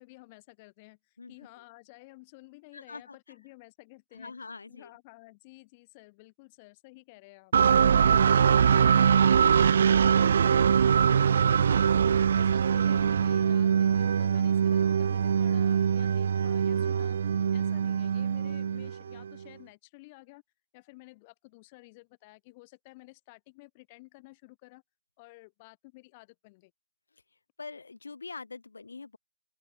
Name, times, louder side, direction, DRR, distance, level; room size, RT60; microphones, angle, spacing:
voice 1, 0.0-4.3 4.7-7.5 7.9-20.4 20.7-24.8 25.2-26.7, left 24 dB, 20° left, 6.0 m, -53 dB
voice 2, 1.2-1.6 2.7-3.2 4.1-4.9 27.1-27.2 27.6-29.2, left 4 dB, 60° left, 6.9 m, -44 dB
sound 1, 7.5-19.3, right 7 dB, 40° right, 0.4 m, -23 dB
open air
figure-of-eight pair, 145°, 0 cm